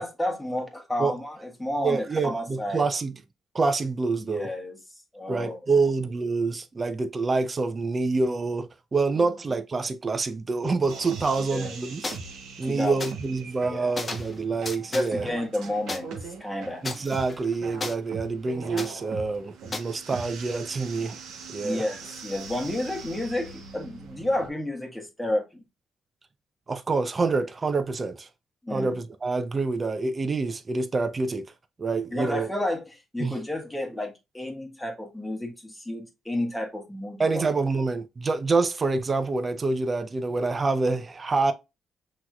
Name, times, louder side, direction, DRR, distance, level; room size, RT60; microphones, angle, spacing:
voice 1, 0.0-2.8 4.2-4.8 5.1-5.9 9.1-9.3 11.4-11.8 12.7-13.0 13.3-13.9 14.9-16.1 16.4-16.8 21.6-25.6 28.6-28.9 32.1-37.5, left 1 dB, 5° left, 1.4 m, -31 dB
voice 2, 1.8-3.1 3.5-4.5 5.3-12.2 12.6-15.3 16.8-21.2 21.5-21.8 26.7-28.3 28.7-31.4 31.8-32.5 33.2-33.3 37.2-41.5, right 3 dB, 30° right, 0.6 m, -26 dB
sound 1, 10.9-24.5, right 4 dB, 80° right, 1.1 m, -41 dB
sound 2, 12.0-12.2 13.0-13.1 14.0-14.3 14.6-15.1 15.9-16.0 16.8-17.9 18.8-18.9 19.7-19.8, left 3 dB, 30° left, 0.8 m, -33 dB
6.0 x 3.0 x 2.3 m
cardioid pair, 90°, 0 cm